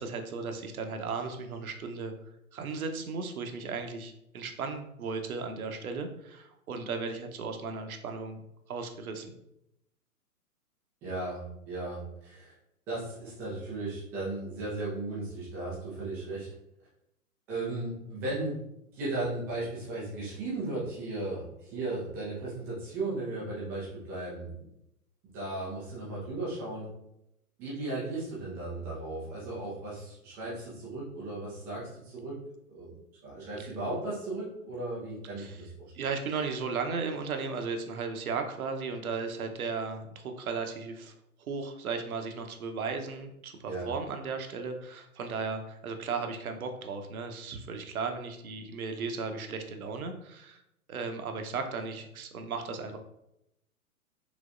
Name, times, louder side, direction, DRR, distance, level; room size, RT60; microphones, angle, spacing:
voice 1, 0.0-2.1 2.5-8.4 8.7-9.3 33.6-33.7 35.4-35.6 35.9-41.1 41.5-50.6 50.9-53.0, right 4 dB, 65° right, 6 dB, 0.9 m, -35 dB
voice 2, 11.0-12.5 12.9-16.5 17.5-18.6 18.9-24.5 25.3-26.9 27.6-32.4 32.7-33.0 33.2-35.9 43.7-43.9, right 2 dB, 5° right, -7 dB, 0.4 m, -36 dB
5.0 x 3.3 x 2.5 m, 0.82 s
figure-of-eight pair, 125°, 46 cm